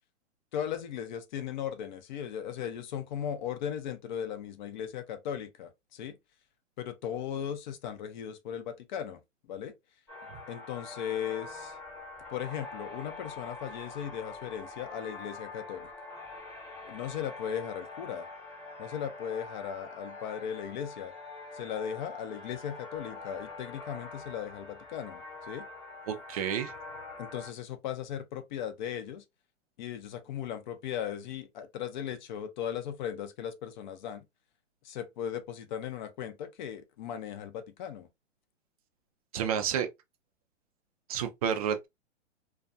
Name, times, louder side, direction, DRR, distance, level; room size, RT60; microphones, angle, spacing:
voice 1, 0.5-6.2 6.8-9.2 9.5-9.7 10.5-11.8 12.3-15.9 16.8-18.3 18.8-21.1 21.5-25.7 27.2-29.2 29.8-34.2 34.8-38.1, left 9 dB, 40° left, 0.5 m, -37 dB
sound 1, 10.1-27.5, left 3 dB, 10° left, 1.0 m, -45 dB
voice 2, 26.1-26.7 39.3-39.9 41.1-41.9, right 8 dB, 30° right, 0.4 m, -30 dB
2.4 x 2.2 x 2.5 m
hypercardioid pair, 125°, 37 cm